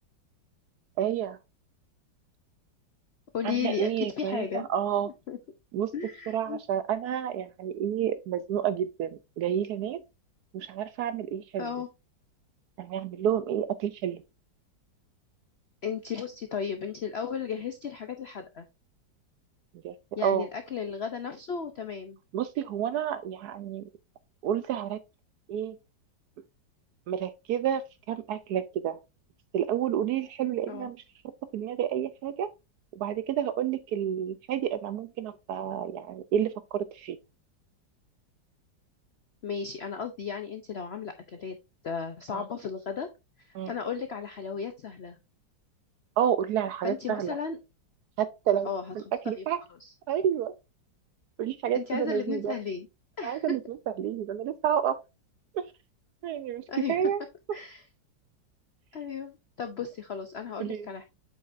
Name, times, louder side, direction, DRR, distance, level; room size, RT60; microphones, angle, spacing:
voice 1, 1.0-1.4 3.4-5.1 5.7-5.9 6.3-10.0 10.5-11.7 12.8-14.2 19.8-19.9 20.2-20.5 22.3-23.8 24.4-25.0 25.5-25.8 27.1-27.8 28.1-29.0 29.5-31.0 31.5-32.5 33.0-37.2 42.3-42.4 43.5-43.7 46.2-47.4 48.2-48.7 49.3-49.6 50.1-50.5 51.4-52.5 53.2-55.0 55.5-55.6 56.2-56.6 56.9-57.2 60.6-60.9, right 9 dB, 75° right, 0.9 m, -29 dB
voice 2, 3.3-4.6 5.0-5.4 5.9-6.6 11.6-11.9 15.8-18.7 20.2-22.2 30.7-30.9 39.4-41.6 41.8-43.1 43.4-45.2 46.8-47.6 48.6-48.9 49.3-49.4 49.8-49.9 51.7-52.9 53.2-53.4 56.7-57.0 57.5-57.8 58.9-61.0, left 7 dB, 80° left, 0.5 m, -35 dB
7.9 x 5.1 x 2.5 m
omnidirectional pair, 2.0 m